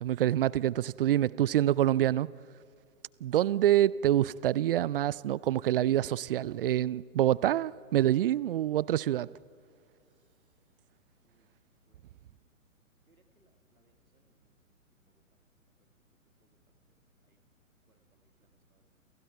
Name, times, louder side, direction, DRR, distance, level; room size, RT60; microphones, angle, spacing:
voice 1, 0.0-2.3 3.2-9.3, right 12 dB, 45° right, 0.5 m, -26 dB
voice 2, 13.1-14.4 17.3-17.4 17.9-18.8, right 2 dB, 90° right, 2.1 m, -70 dB
29.0 x 29.0 x 4.5 m
figure-of-eight pair, 115°, 41 cm